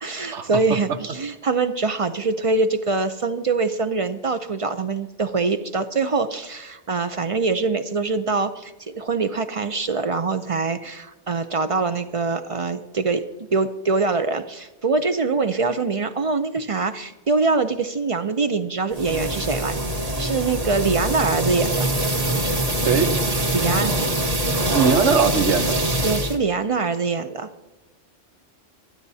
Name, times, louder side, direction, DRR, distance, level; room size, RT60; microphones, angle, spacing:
voice 1, 0.0-19.8 20.2-21.9 23.5-24.0 26.0-27.5, right 4 dB, 50° right, 10 dB, 0.4 m, -24 dB
sound 1, 18.9-26.4, right 1 dB, 30° right, 1.4 m, -23 dB
voice 2, 22.8-23.1 24.7-25.8, right 5 dB, 75° right, 9 dB, 1.2 m, -20 dB
26.5 x 9.6 x 2.7 m, 1.1 s
omnidirectional pair, 1.2 m